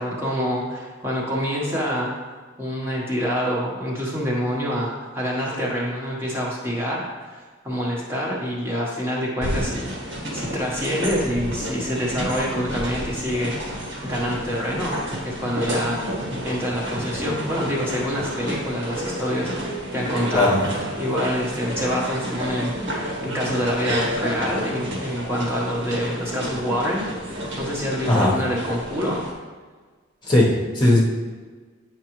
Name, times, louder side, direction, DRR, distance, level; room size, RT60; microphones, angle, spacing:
voice 1, 0.0-2.1 2.6-13.7 14.0-15.0 15.2-16.0 16.4-20.5 21.0-22.7 23.2-29.2, equal, 10° right, -5 dB, 1.0 m, -26 dB
sound 1, 9.4-29.3, equal, 65° right, 1.6 m, -30 dB
voice 2, 28.0-28.4 30.2-31.0, left 1 dB, 20° left, -4 dB, 1.1 m, -18 dB
8.5 x 4.7 x 3.0 m, 1.4 s
head